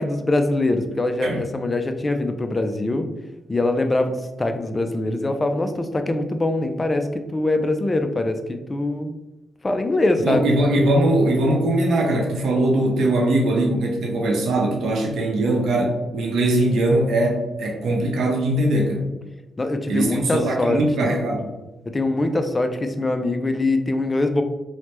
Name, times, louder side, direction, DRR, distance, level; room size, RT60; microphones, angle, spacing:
voice 1, 0.0-3.1 3.5-9.1 9.6-10.5 19.6-21.1 21.9-24.4, left 2 dB, 25° left, 7 dB, 0.3 m, -23 dB
voice 2, 10.2-19.0 19.9-21.5, right 1 dB, 80° right, 1 dB, 0.6 m, -21 dB
3.2 x 2.1 x 2.9 m, 1.1 s
cardioid pair, 90°, 0 cm